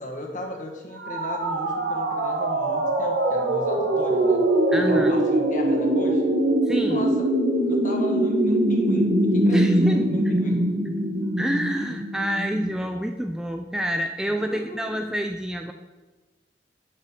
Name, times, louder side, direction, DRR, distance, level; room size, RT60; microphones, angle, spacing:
voice 1, 0.0-4.5 4.7-6.4 6.9-7.3 7.6-10.7 14.3-15.0, left 1 dB, 45° left, 1 dB, 1.4 m, -36 dB
sound 1, 1.0-12.8, right 1 dB, 70° right, 1.2 m, -22 dB
voice 2, 4.7-5.2 6.7-7.1 9.5-10.1 11.4-15.7, equal, 5° right, 4 dB, 0.3 m, -27 dB
9.9 x 6.4 x 3.7 m, 1.2 s
head